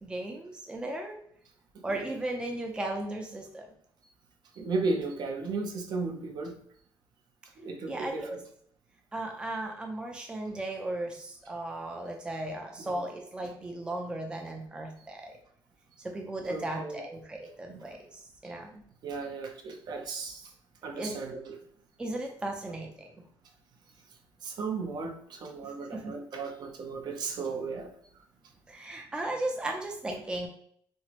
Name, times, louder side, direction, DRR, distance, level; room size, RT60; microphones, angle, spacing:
voice 1, 0.0-1.2 1.8-3.7 7.9-8.4 9.1-15.3 16.0-18.7 20.9-21.2 22.0-23.1 25.9-26.1 28.7-30.5, right 1 dB, 10° right, 2 dB, 0.4 m, -36 dB
voice 2, 1.9-2.2 4.5-6.6 7.6-8.4 12.8-13.0 16.5-17.0 17.7-17.9 19.0-20.5 20.8-21.6 24.4-27.9, right 4 dB, 55° right, 3 dB, 0.6 m, -35 dB
4.3 x 2.0 x 2.9 m, 0.65 s
cardioid pair, 135°, 9 cm